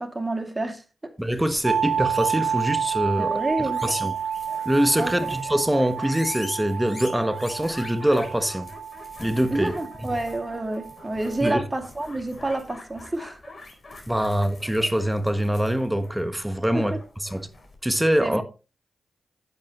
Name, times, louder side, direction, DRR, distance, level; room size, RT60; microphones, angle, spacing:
voice 1, 0.0-1.1 3.2-3.8 5.0-5.1 9.5-13.4 16.7-17.0 18.2-18.4, right 2 dB, 30° right, 2.3 m, -29 dB
sound 1, 1.2-17.8, left 2 dB, 45° left, 4.4 m, -44 dB
voice 2, 1.2-4.1 4.6-8.7 9.2-9.7 11.4-11.6 14.1-16.9 17.2-17.5 17.8-18.4, equal, 10° right, 1.3 m, -24 dB
sound 2, 1.6-11.4, right 8 dB, 70° right, 0.9 m, -30 dB
10.5 x 8.7 x 3.0 m
supercardioid pair, 45°, 0 cm